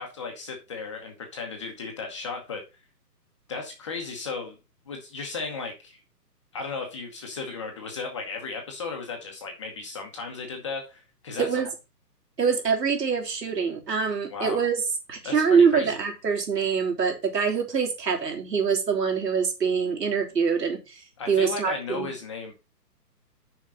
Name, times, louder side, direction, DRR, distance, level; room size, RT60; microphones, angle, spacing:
voice 1, 0.0-2.6 3.5-4.6 4.9-6.0 6.5-11.6 14.3-14.7 15.2-16.0 21.2-22.5, left 4 dB, 20° left, 1.0 m, -35 dB
voice 2, 11.4-11.7 12.4-14.8 15.1-21.0 21.3-22.1, right 6 dB, 75° right, 3.3 m, -24 dB
6.3 x 5.5 x 5.4 m
hypercardioid pair, 165°, 49 cm